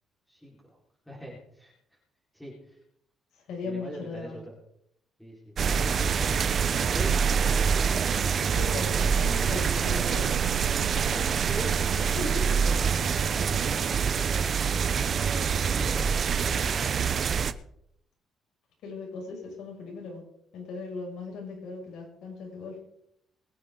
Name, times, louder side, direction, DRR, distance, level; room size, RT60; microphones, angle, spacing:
voice 1, 1.1-1.7 2.3-2.5 3.6-4.5 5.2-5.5 6.9-7.1 7.4-7.5 7.8-8.3 10.8-12.1 13.4-13.5 15.6-17.0, right 1 dB, ahead, -6 dB, 4.7 m, -42 dB
voice 2, 3.5-4.3 8.5-10.3 11.9-13.1 18.8-20.2 20.5-22.8, left 3 dB, 75° left, -1 dB, 6.5 m, -38 dB
sound 1, 5.6-17.5, right 6 dB, 45° right, 0.8 m, -25 dB
23.0 x 9.5 x 3.9 m, 0.73 s
cardioid pair, 115°, 0 cm